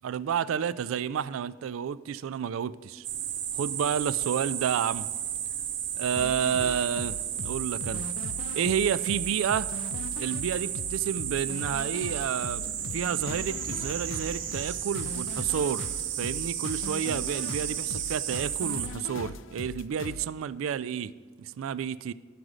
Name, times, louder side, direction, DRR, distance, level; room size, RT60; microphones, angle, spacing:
voice 1, 0.0-3.0 3.5-5.1 6.0-8.1 8.5-9.7 10.2-15.9 16.2-21.1 21.4-22.1, right 8 dB, 90° right, 0.3 m, -30 dB
sound 1, 3.0-18.9, right 10 dB, 70° right, 0.8 m, -33 dB
sound 2, 6.2-20.3, left 4 dB, 75° left, 0.4 m, -40 dB
sound 3, 11.9-16.1, equal, 30° right, 0.7 m, -47 dB
11.0 x 5.0 x 6.4 m
head